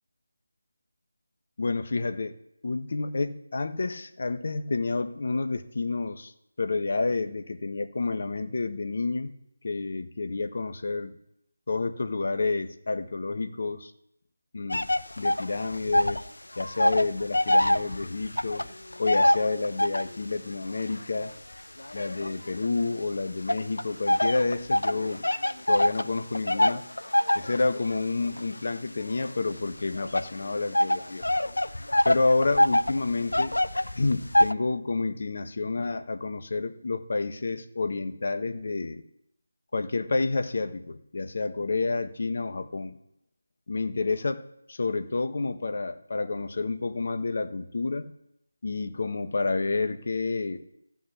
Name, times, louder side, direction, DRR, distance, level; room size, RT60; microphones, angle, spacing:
voice 1, 1.6-2.3 2.6-6.3 6.6-9.3 9.6-11.2 11.7-13.9 14.5-14.9 15.2-16.2 16.6-18.6 19.0-21.3 21.9-25.2 25.7-26.8 27.3-31.2 32.0-33.6 33.9-39.0 39.7-43.0 43.7-48.1 48.6-50.6, left 3 dB, 50° left, 8 dB, 1.5 m, -29 dB
sound 1, 14.7-16.3 16.5-20.2 20.8-22.9 23.5-34.5, left 1 dB, 80° left, 0.8 m, -25 dB
14.5 x 6.2 x 8.6 m, 0.80 s
figure-of-eight pair, 165°, 0 cm